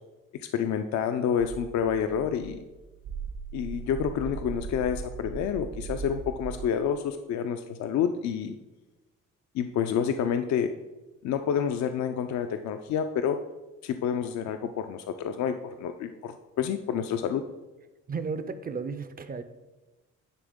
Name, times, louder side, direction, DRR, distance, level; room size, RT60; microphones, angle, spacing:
voice 1, 0.4-2.6 3.5-8.6 9.5-10.7 11.2-13.4 13.8-17.4, left 8 dB, 65° left, 8 dB, 0.4 m, -28 dB
sound 1, 1.4-6.6, right 5 dB, 70° right, 1.1 m, -39 dB
voice 2, 18.1-19.4, right 5 dB, 30° right, 10 dB, 0.4 m, -33 dB
9.7 x 3.4 x 3.6 m, 1.1 s
cardioid pair, 90°, 30 cm